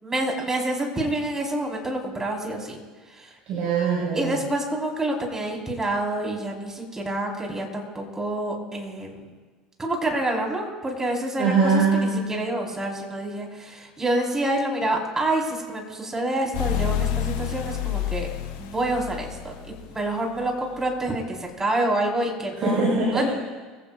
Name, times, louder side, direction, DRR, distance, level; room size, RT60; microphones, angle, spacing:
voice 1, 0.0-2.8 3.1-3.3 4.1-9.2 9.8-18.3 18.6-22.8 23.1-23.2, right 1 dB, 15° right, 0 dB, 5.3 m, -27 dB
voice 2, 3.5-4.4 11.4-12.1 22.6-23.2, right 4 dB, 50° right, -5 dB, 6.2 m, -22 dB
sound 1, 16.5-20.1, left 10 dB, 60° left, 3.8 m, -28 dB
25.5 x 16.0 x 2.7 m, 1.4 s
hypercardioid pair, 70°, 3 cm